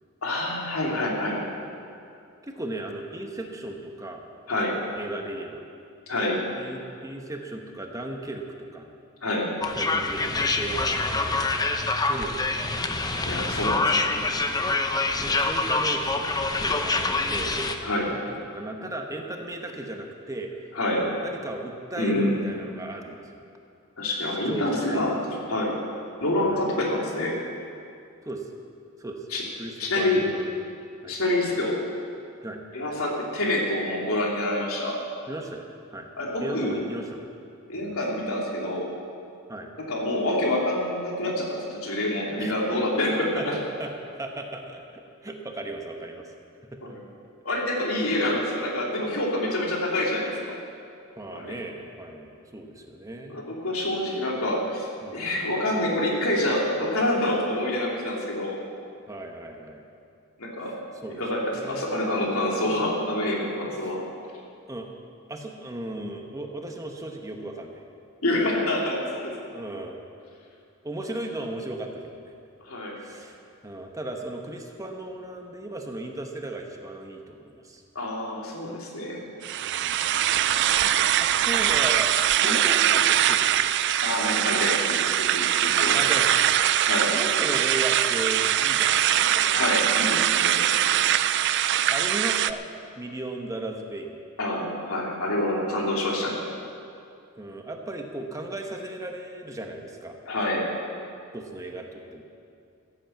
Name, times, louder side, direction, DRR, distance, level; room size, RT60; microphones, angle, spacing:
voice 1, 0.2-1.4 4.5-4.8 6.1-6.4 9.2-9.5 13.3-14.3 17.8-18.1 20.7-21.0 22.0-22.3 24.0-25.2 25.5-25.8 26.2-27.4 29.3-29.4 29.8-30.2 31.1-31.8 32.7-35.0 36.2-36.8 37.7-38.9 39.8-43.6 46.8-47.0 47.4-50.5 51.3-51.5 53.3-58.6 60.4-60.7 61.2-64.0 68.2-69.3 72.6-73.0 77.9-79.2 82.4-82.6 84.0-86.0 86.8-87.1 89.5-90.6 94.4-96.4 100.3-100.6, left 1 dB, 90° left, -2 dB, 3.0 m, -27 dB
voice 2, 2.4-4.2 5.0-5.6 6.6-8.9 9.8-12.9 15.2-16.3 16.6-17.7 18.1-20.7 20.9-23.4 24.4-25.1 26.4-26.6 28.2-28.5 29.0-29.3 29.6-30.5 31.0-31.2 32.4-32.6 35.3-35.6 35.9-36.1 36.4-37.3 37.7-37.9 39.5-39.7 42.4-42.5 43.4-46.3 46.7-46.9 51.2-53.3 55.0-55.3 59.1-59.8 60.7-61.2 61.5-61.9 63.7-63.9 64.7-64.9 65.3-67.8 69.5-70.0 70.8-72.4 73.0-73.4 73.6-77.8 79.6-80.0 80.5-80.9 81.2-82.1 82.4-83.6 85.8-86.5 87.1-89.5 91.0-91.1 91.9-92.6 93.0-94.2 97.4-100.2 101.3-102.2, right 2 dB, 15° right, 2 dB, 1.2 m, -36 dB
sound 1, 9.6-17.7, left 3 dB, 20° left, 0.8 m, -26 dB
sound 2, 79.4-92.5, right 11 dB, 55° right, 0.4 m, -22 dB
15.0 x 8.7 x 7.8 m, 2.5 s
head